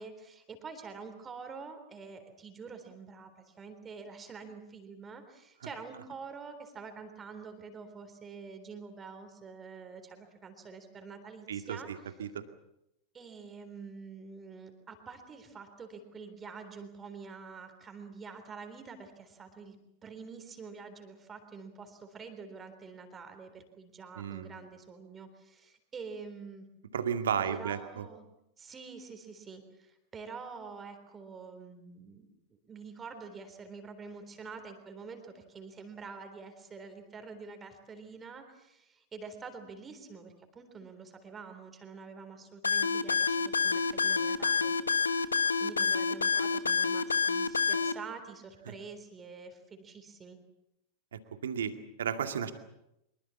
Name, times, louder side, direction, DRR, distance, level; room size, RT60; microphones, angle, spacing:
voice 1, 0.0-12.1 13.1-19.8 20.0-26.6 27.4-28.2 28.6-32.3 32.7-44.7 45.6-50.4, right 5 dB, 20° right, 7 dB, 3.8 m, -47 dB
voice 2, 11.5-12.4 24.2-24.6 26.9-28.1 48.7-48.8 51.1-52.5, right 8 dB, 65° right, 8 dB, 2.2 m, -34 dB
sound 1, 42.6-47.9, left 5 dB, 75° left, 1.1 m, -28 dB
24.5 x 23.0 x 7.2 m, 0.83 s
figure-of-eight pair, 90°, 0 cm